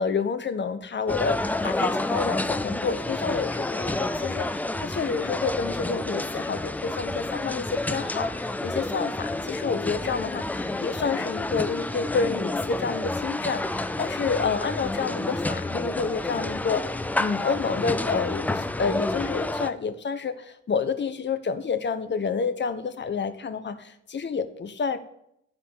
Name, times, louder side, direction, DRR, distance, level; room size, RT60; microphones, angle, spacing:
voice 1, 0.0-16.9 17.2-25.0, left 5 dB, 30° left, 10 dB, 0.9 m, -29 dB
sound 1, 1.1-19.7, left 2 dB, 5° left, 0.3 m, -29 dB
10.5 x 4.8 x 6.9 m, 0.74 s
figure-of-eight pair, 45°, 38 cm